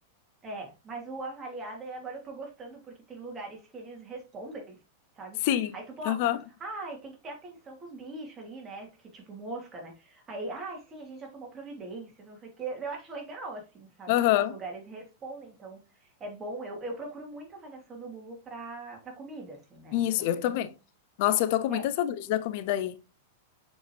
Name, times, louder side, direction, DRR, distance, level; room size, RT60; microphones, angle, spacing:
voice 1, 0.4-4.8 5.2-5.4 5.7-6.3 6.6-20.7 21.7-21.9, right 2 dB, 25° right, 3.0 m, -41 dB
voice 2, 5.4-5.7 6.1-6.4 14.1-14.6 19.9-20.7 21.2-22.9, left 12 dB, 55° left, 0.6 m, -26 dB
6.6 x 5.3 x 3.0 m
hypercardioid pair, 100°, 0 cm